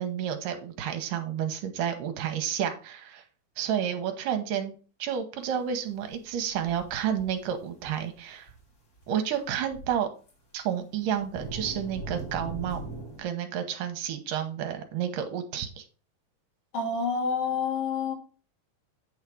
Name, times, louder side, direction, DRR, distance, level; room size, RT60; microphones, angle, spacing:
voice 1, 0.0-3.2 3.6-8.5 9.1-10.1 10.5-12.8 13.2-15.8, right 9 dB, 75° right, 6 dB, 2.5 m, -30 dB
sound 1, 6.1-8.2 8.5-8.6 9.0-9.1 9.4-10.0 10.3-10.4 11.0-13.2, right 2 dB, 35° left, 1.6 m, -40 dB
voice 2, 16.7-18.1, left 5 dB, 60° left, -1 dB, 3.8 m, -28 dB
9.0 x 4.8 x 4.7 m, 0.37 s
omnidirectional pair, 4.0 m